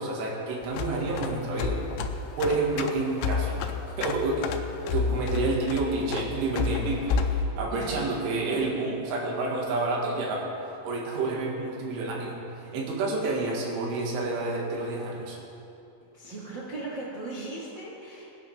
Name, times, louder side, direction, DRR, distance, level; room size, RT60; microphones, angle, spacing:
voice 1, 0.0-1.8 2.4-3.6 4.0-4.6 4.9-10.5 10.8-12.4 12.7-15.4, right 3 dB, 85° right, -2 dB, 4.4 m, -29 dB
sound 1, 0.6-7.4, left 5 dB, 85° left, 3.0 m, -30 dB
voice 2, 16.1-18.3, right 2 dB, 60° right, -7 dB, 1.1 m, -37 dB
22.0 x 9.9 x 3.6 m, 2.8 s
omnidirectional pair, 5.4 m